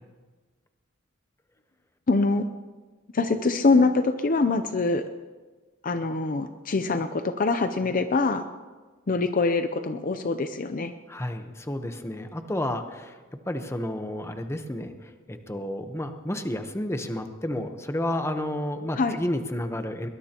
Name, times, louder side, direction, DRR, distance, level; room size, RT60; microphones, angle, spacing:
voice 1, 2.1-2.4 3.1-5.1 5.8-8.4 9.1-10.9 19.0-19.2, left 3 dB, 40° left, 9 dB, 0.6 m, -24 dB
voice 2, 11.1-13.2 13.4-20.1, left 1 dB, 15° left, 7 dB, 1.0 m, -31 dB
22.0 x 20.0 x 3.0 m, 1.4 s
head